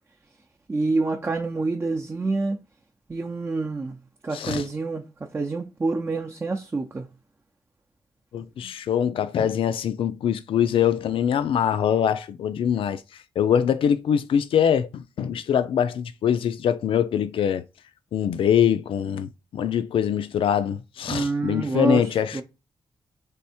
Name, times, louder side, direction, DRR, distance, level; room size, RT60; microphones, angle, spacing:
voice 1, 0.7-2.6 3.1-4.0 4.2-5.1 5.3-7.1 21.1-22.4, right 3 dB, 25° right, 0.6 m, -27 dB
voice 2, 4.3-4.6 8.3-13.0 13.4-17.7 18.1-22.4, left 9 dB, 85° left, 0.4 m, -23 dB
3.5 x 3.5 x 4.3 m
wide cardioid pair, 105°, 9 cm